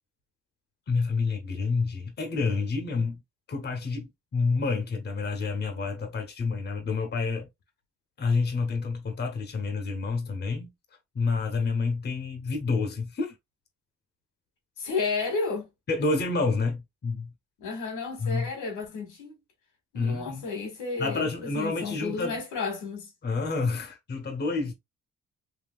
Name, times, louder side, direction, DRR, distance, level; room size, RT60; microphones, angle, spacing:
voice 1, 0.9-3.2 3.5-7.5 8.2-10.7 11.1-13.4 15.9-17.3 18.2-18.5 19.9-20.4 21.0-22.4 23.2-24.7, left 4 dB, 35° left, 0.9 m, -28 dB
voice 2, 14.8-15.7 17.6-19.3 19.9-21.2 21.5-23.1, left 4 dB, 85° left, 1.8 m, -32 dB
3.6 x 2.7 x 2.3 m
cardioid pair, 90°, 30 cm